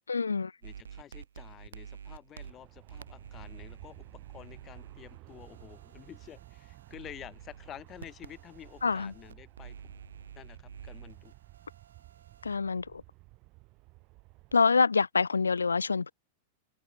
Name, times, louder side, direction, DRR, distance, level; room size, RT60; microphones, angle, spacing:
voice 1, 0.1-0.5 8.8-9.1 12.4-13.0 14.5-16.1, left 4 dB, 90° left, 0.3 m, -26 dB
voice 2, 0.6-4.0 4.3-10.0 10.3-11.3, left 11 dB, 30° left, 2.5 m, -50 dB
sound 1, 0.6-12.6, right 7 dB, 80° right, 7.8 m, -50 dB
Aircraft, 2.4-14.6, right 24 dB, 45° right, 3.2 m, -54 dB
hypercardioid pair, 100°, 0 cm